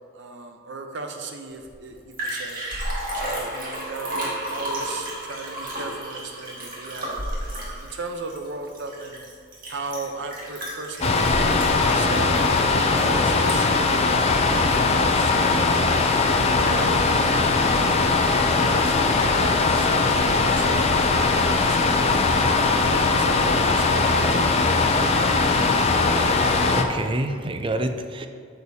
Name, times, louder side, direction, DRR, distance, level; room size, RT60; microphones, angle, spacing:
voice 1, 0.1-2.6 3.1-7.2 7.4-9.2 9.7-12.5 12.9-16.0 16.5-17.5 18.1-21.2 21.4-22.4 22.9-24.4, right 3 dB, 65° right, 5 dB, 0.7 m, -36 dB
Liquid, 1.7-1.8 2.0-13.9 14.3-14.4, right 1 dB, 45° right, 1.9 m, -32 dB
sound 1, 11.0-26.8, left 3 dB, 30° left, 0.5 m, -20 dB
voice 2, 26.4-28.3, right 1 dB, 25° right, 7 dB, 0.4 m, -28 dB
8.6 x 6.6 x 2.8 m, 2.2 s
head